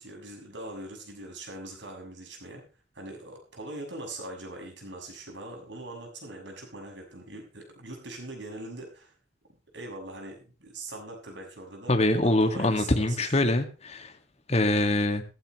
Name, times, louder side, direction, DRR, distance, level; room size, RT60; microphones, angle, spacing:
voice 1, 0.0-2.7 2.9-9.1 9.7-13.3, right 2 dB, 80° right, 1 dB, 6.7 m, -41 dB
voice 2, 11.9-14.1 14.5-15.2, left 1 dB, 35° left, 6 dB, 2.0 m, -24 dB
16.0 x 15.0 x 3.2 m, 0.33 s
head